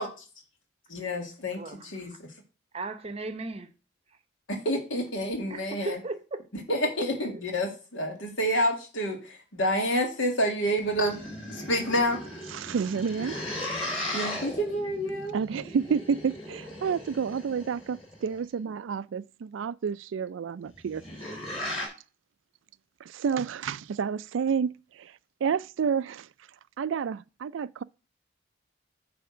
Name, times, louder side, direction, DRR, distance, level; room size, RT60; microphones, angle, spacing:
voice 1, 0.9-2.1 4.5-6.0 6.5-11.2 11.5-12.2 14.1-15.4, equal, 75° left, 2.1 m, -28 dB
voice 2, 1.5-2.2 2.7-3.7 5.5-6.4 7.1-7.4, right 2 dB, 30° right, 0.7 m, -37 dB
sound 1, 10.7-18.3 20.7-21.9, left 1 dB, 30° left, 3.3 m, -37 dB
voice 3, 12.5-13.4 15.3-21.0 23.1-25.1 25.4-26.3 26.8-27.8, right 6 dB, 70° right, 0.3 m, -30 dB
9.4 x 3.5 x 6.0 m
head